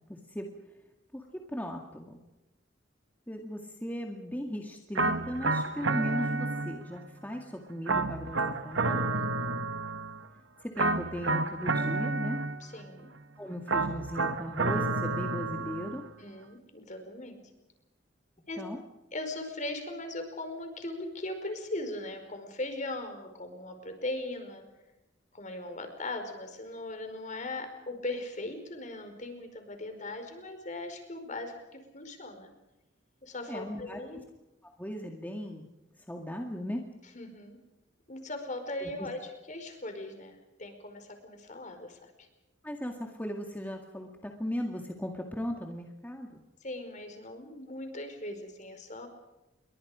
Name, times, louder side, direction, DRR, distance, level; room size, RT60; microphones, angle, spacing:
voice 1, 0.1-0.6 1.1-2.2 3.3-9.1 10.6-12.4 13.4-16.1 18.6-18.8 33.5-34.2 34.6-35.7 36.0-36.8 38.8-39.1 42.6-46.4, equal, 10° left, 2 dB, 2.1 m, -37 dB
sound 1, 4.9-7.0 7.9-10.2 10.8-12.9 13.7-16.1, right 3 dB, 75° right, 1.5 m, -30 dB
voice 2, 9.2-9.7 12.6-13.1 16.2-17.4 18.5-18.6 19.1-24.6 25.3-32.5 33.2-34.2 37.1-37.6 38.1-42.3 46.6-49.1, left 2 dB, 40° left, 7 dB, 5.0 m, -39 dB
29.0 x 23.5 x 5.1 m, 0.99 s
head